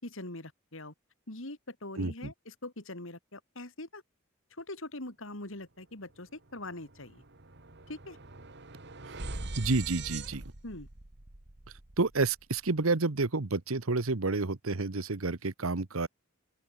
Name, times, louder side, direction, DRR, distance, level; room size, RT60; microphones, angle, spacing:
voice 1, 0.0-0.9 1.3-4.0 4.6-7.2 7.9-8.2 10.6-10.9, left 2 dB, 65° left, 3.8 m, -42 dB
voice 2, 2.0-2.3 9.6-10.4 12.0-16.1, right 3 dB, 80° right, 1.2 m, -29 dB
sound 1, 6.0-6.2 6.5-12.7, right 3 dB, 55° right, 2.1 m, -43 dB
open air
head